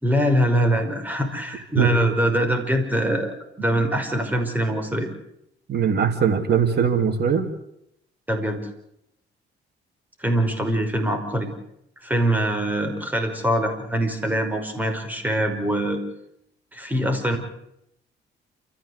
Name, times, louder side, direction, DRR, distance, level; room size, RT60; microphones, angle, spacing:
voice 1, 0.0-5.1 8.3-8.6 10.2-11.5 12.0-16.0 16.7-17.4, right 1 dB, 10° right, 5 dB, 5.6 m, -23 dB
voice 2, 5.7-7.4, right 7 dB, 55° right, 6 dB, 2.9 m, -20 dB
28.5 x 14.5 x 8.2 m, 0.79 s
cardioid pair, 90°, 20 cm